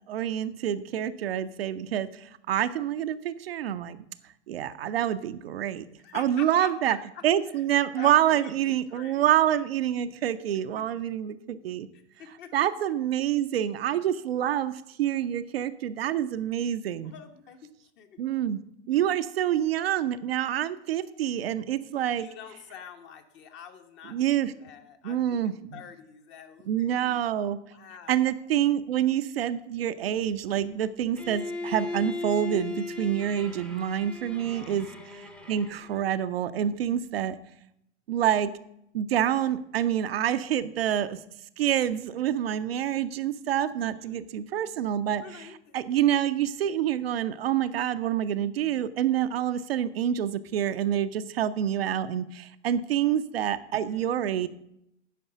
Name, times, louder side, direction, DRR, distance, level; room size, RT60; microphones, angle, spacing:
voice 1, 0.1-4.0 4.5-5.9 6.1-7.0 7.2-11.9 12.5-14.7 15.0-17.1 18.2-18.6 18.9-22.3 24.1-24.5 25.0-25.8 26.7-27.6 28.1-37.4 38.1-38.5 38.9-41.2 41.6-45.5 45.7-54.5, right 10 dB, 60° right, 11 dB, 0.6 m, -27 dB
voice 2, 6.0-7.0 7.5-7.6 7.9-9.3 11.9-12.5 17.0-17.7 18.0-18.2 22.1-27.2 27.7-28.3 34.3-34.8 43.8-44.2 45.2-45.9 53.7-54.4, left 8 dB, 30° left, 7 dB, 1.1 m, -47 dB
Bowed string instrument, 31.2-36.1, left 2 dB, 5° left, 0.8 m, -37 dB
9.2 x 5.4 x 6.7 m, 0.77 s
figure-of-eight pair, 90°, 35 cm